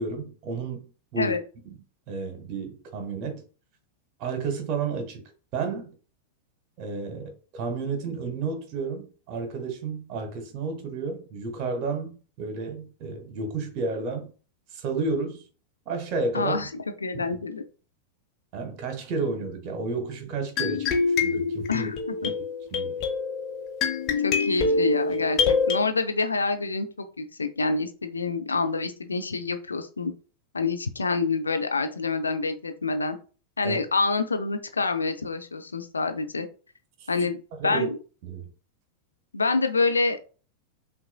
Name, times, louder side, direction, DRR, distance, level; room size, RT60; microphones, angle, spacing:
voice 1, 0.0-1.4 2.1-3.4 4.2-5.2 5.5-5.9 6.8-14.3 14.7-15.4 15.9-16.6 17.1-17.2 18.5-21.9 22.2-22.3 22.7-23.0 33.6-33.8 37.0-37.1 37.6-37.9 38.2-38.5, right 4 dB, 40° right, 1.2 m, -31 dB
voice 2, 16.3-17.6 21.7-22.3 24.2-30.1 30.5-33.2 33.6-36.5 37.1-37.4 37.6-38.0 39.3-40.2, left 3 dB, 75° left, 0.5 m, -27 dB
sound 1, 20.6-25.8, left 4 dB, 35° left, 0.8 m, -25 dB
5.8 x 2.5 x 2.2 m
figure-of-eight pair, 90°, 0 cm